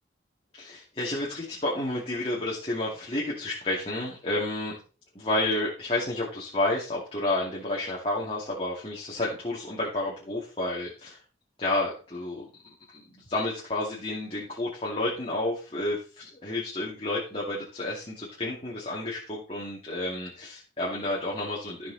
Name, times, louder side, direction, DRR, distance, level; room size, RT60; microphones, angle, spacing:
voice 1, 0.5-4.8 5.1-11.2 11.6-12.5 12.9-21.9, left 2 dB, 30° left, -5 dB, 2.4 m, -30 dB
13.5 x 6.1 x 4.2 m, 0.35 s
head